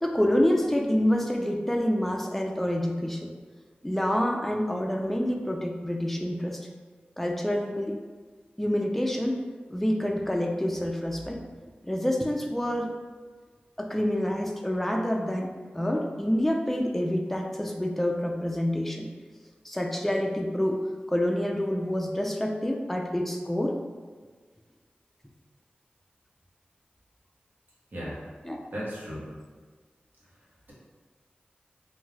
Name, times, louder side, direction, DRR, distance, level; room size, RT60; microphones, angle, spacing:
voice 1, 0.0-3.3 3.8-6.7 7.2-8.0 8.6-9.4 9.7-11.4 11.8-12.9 13.8-19.1 19.6-20.8 21.1-23.8 28.4-28.6, left 1 dB, 5° left, 1 dB, 0.4 m, -27 dB
voice 2, 28.7-29.3, equal, 65° right, -7 dB, 1.0 m, -35 dB
2.6 x 2.2 x 3.1 m, 1.5 s
cardioid pair, 45°, 3 cm